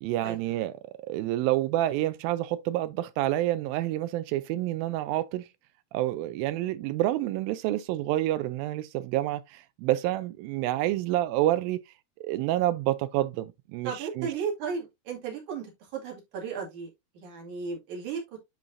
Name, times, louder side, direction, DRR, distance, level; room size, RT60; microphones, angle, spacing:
voice 1, 0.0-5.5 5.9-11.8 12.2-14.3, right 15 dB, 85° right, 2.0 m, -28 dB
voice 2, 13.8-15.7 15.9-16.9 17.2-18.2, right 6 dB, 55° right, 3.4 m, -34 dB
10.5 x 3.9 x 2.6 m
omnidirectional pair, 4.6 m